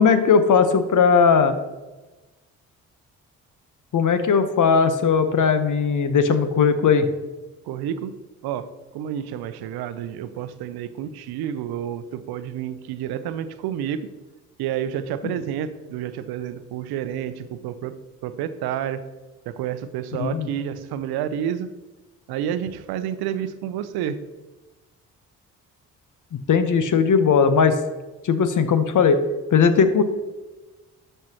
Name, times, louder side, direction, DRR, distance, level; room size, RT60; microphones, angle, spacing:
voice 1, 0.0-1.6 3.9-7.1 20.2-20.5 26.5-27.8 28.2-29.2 29.5-30.0, left 6 dB, 50° left, 10 dB, 1.1 m, -18 dB
voice 2, 7.6-8.1 8.4-8.7 8.9-14.1 14.6-17.9 18.2-19.0 19.5-21.7 22.3-24.2, right 9 dB, 75° right, 12 dB, 0.7 m, -29 dB
12.0 x 5.6 x 3.0 m, 1.1 s
hypercardioid pair, 45°, 39 cm